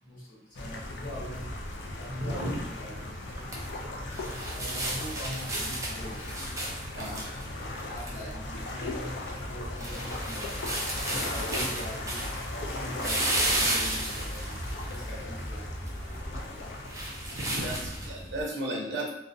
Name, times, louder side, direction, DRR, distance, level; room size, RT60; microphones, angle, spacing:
voice 1, 0.0-1.4 1.9-3.0 4.6-6.2 7.8-10.5 11.2-12.2 12.5-14.6 14.9-15.6, equal, 50° left, -7 dB, 1.0 m, -42 dB
sound 1, 0.5-18.1, left 2 dB, 70° left, 0.4 m, -38 dB
voice 2, 2.2-2.6 6.9-7.4 11.1-11.7 17.3-19.1, right 1 dB, 90° right, -2 dB, 0.6 m, -35 dB
sound 2, 3.2-18.4, right 1 dB, 20° right, 0.4 m, -34 dB
2.4 x 2.1 x 2.5 m, 0.79 s
head